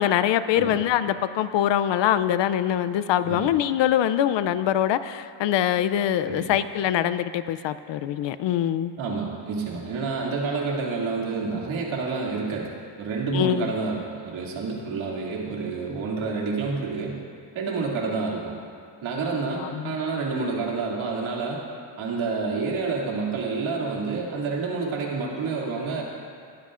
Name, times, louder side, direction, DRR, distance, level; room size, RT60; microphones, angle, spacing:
voice 1, 0.0-8.9 13.3-13.8 19.6-20.0, left 11 dB, 60° left, 13 dB, 0.5 m, -23 dB
voice 2, 9.0-12.7 13.0-17.2 17.5-18.6 19.0-21.6 22.0-26.0, right 4 dB, 70° right, -3 dB, 2.6 m, -28 dB
19.0 x 12.5 x 2.5 m, 2.2 s
cardioid pair, 125°, 49 cm